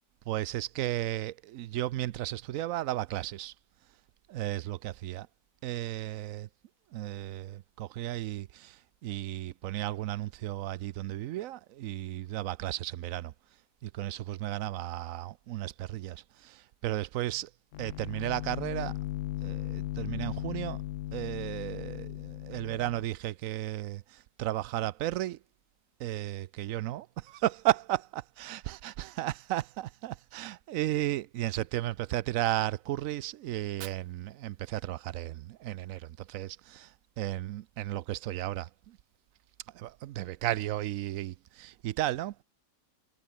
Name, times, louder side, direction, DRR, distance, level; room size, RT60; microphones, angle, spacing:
voice 1, 0.3-3.5 4.3-5.3 5.6-6.5 6.9-13.3 13.8-17.5 17.8-19.0 19.4-20.8 21.1-25.4 26.0-39.0 39.7-42.4, right 14 dB, 70° right, 0.8 m, -34 dB
sound 1, 17.7-23.1, left 14 dB, 75° left, 0.7 m, -37 dB
Fire, 33.5-35.5, right 14 dB, 90° right, 1.3 m, -52 dB
omnidirectional pair, 1.8 m